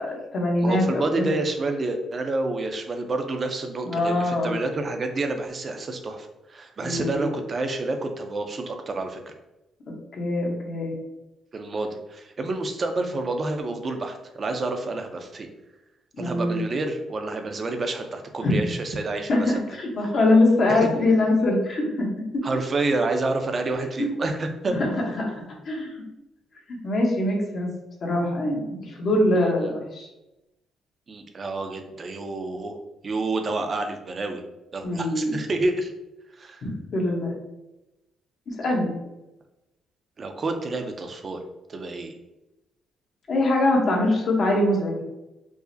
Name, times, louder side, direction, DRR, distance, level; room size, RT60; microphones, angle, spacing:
voice 1, 0.0-1.3 3.8-4.5 6.8-7.3 10.1-10.9 16.2-16.6 18.4-18.5 19.3-22.1 24.0-24.1 24.7-25.9 26.7-27.7 28.0-30.1 34.8-35.3 36.6-37.3 38.5-38.9 43.3-45.0, left 1 dB, 55° left, -1 dB, 0.9 m, -23 dB
voice 2, 0.6-9.3 11.5-15.5 16.2-19.5 20.7-20.9 22.4-24.7 29.3-29.5 31.1-32.8 33.0-34.4 34.7-35.9 36.4-36.7 40.2-41.4 41.7-42.1, right 2 dB, 40° right, 5 dB, 0.5 m, -29 dB
4.7 x 2.1 x 2.6 m, 0.97 s
cardioid pair, 90°, 0 cm